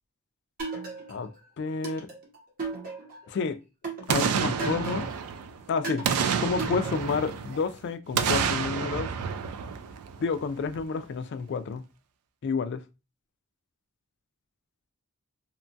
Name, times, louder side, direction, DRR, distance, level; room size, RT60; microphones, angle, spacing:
sound 1, 0.6-1.4 1.8-3.3 3.8-5.3 5.8-7.3, right 3 dB, 40° right, 0.8 m, -36 dB
voice 1, 1.6-2.1 3.3-3.6 4.1-5.1 5.7-6.1 6.4-9.1 10.2-11.8 12.4-12.8, left 5 dB, 50° left, 0.3 m, -30 dB
Boom, 4.1-5.6 6.0-7.7 8.1-10.4 10.8-10.9, right 6 dB, 85° right, 0.4 m, -29 dB
2.9 x 2.2 x 2.6 m
head